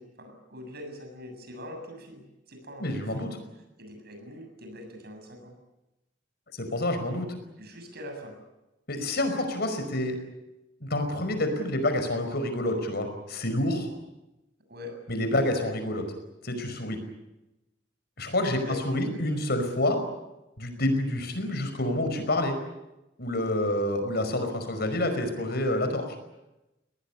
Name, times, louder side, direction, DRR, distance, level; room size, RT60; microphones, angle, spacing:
voice 1, 0.0-3.3 3.8-5.6 7.6-8.4 14.7-15.0 18.6-19.2, left 1 dB, 60° right, 5 dB, 7.3 m, -43 dB
voice 2, 2.8-3.3 6.6-7.4 8.9-10.2 10.8-13.9 15.1-16.1 16.4-17.0 18.2-20.0 20.6-22.6 23.2-26.0, left 1 dB, 60° left, 7 dB, 5.2 m, -28 dB
23.0 x 19.0 x 9.9 m, 0.97 s
head